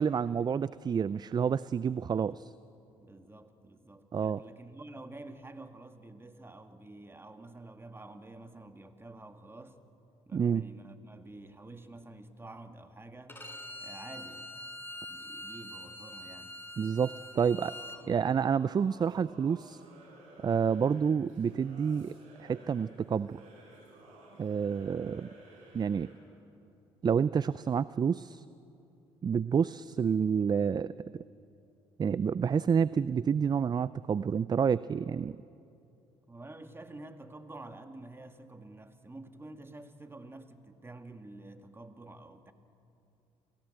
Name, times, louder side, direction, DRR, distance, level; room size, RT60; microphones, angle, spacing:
voice 1, 0.0-2.5 4.1-4.4 10.3-10.6 16.8-17.7 18.1-19.8 20.4-23.4 24.4-25.3 25.7-26.1 27.0-28.4 29.2-31.2 32.0-35.4, right 7 dB, 35° right, 18 dB, 0.4 m, -29 dB
voice 2, 3.0-9.8 10.3-13.4 13.8-14.7 15.1-16.6 36.3-42.5, right 2 dB, 20° right, 7 dB, 2.1 m, -49 dB
Bowed string instrument, 13.3-18.0, left 1 dB, 15° left, 5.5 m, -44 dB
Singing / Musical instrument, 17.4-26.3, right 2 dB, 75° right, 7.3 m, -55 dB
29.0 x 17.0 x 7.9 m, 2.7 s
hypercardioid pair, 60°, 13 cm